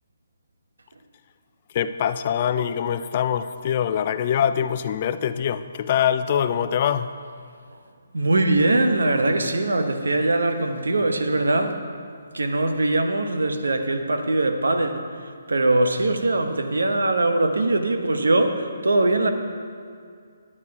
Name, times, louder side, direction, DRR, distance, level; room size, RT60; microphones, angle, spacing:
voice 1, 1.7-7.1, left 9 dB, 40° left, 11 dB, 0.4 m, -23 dB
voice 2, 8.1-11.8 12.3-15.1 15.5-19.3, right 2 dB, 85° right, 6 dB, 1.0 m, -21 dB
11.0 x 9.9 x 4.8 m, 2.2 s
hypercardioid pair, 150°, 0 cm